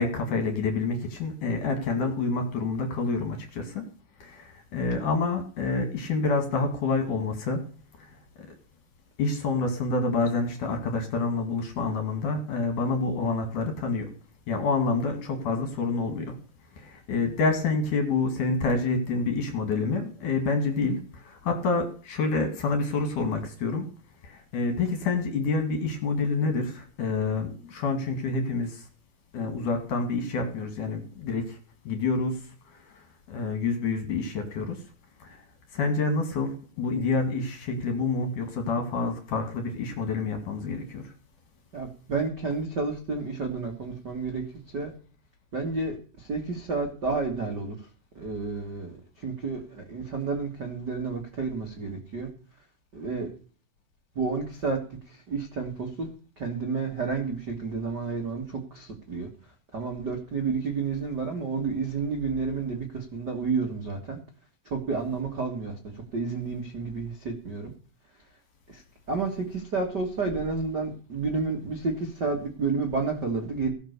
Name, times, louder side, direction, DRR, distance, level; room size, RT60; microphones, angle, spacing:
voice 1, 0.0-3.8 4.2-7.6 8.0-8.1 9.2-14.1 14.5-16.4 16.8-23.9 24.2-28.9 29.3-31.6 31.8-32.4 32.7-34.8 35.2-35.4 35.7-41.1, left 3 dB, 55° left, 2.7 m, -28 dB
voice 2, 41.7-44.4 44.7-44.9 45.5-47.7 48.1-49.0 49.2-52.3 52.9-53.3 54.1-54.8 55.3-56.1 56.4-59.3 59.7-64.2 64.7-65.7 66.1-67.7 68.7-68.8 69.1-73.7, right 4 dB, 75° right, 0.9 m, -30 dB
17.0 x 6.1 x 6.7 m
omnidirectional pair, 5.6 m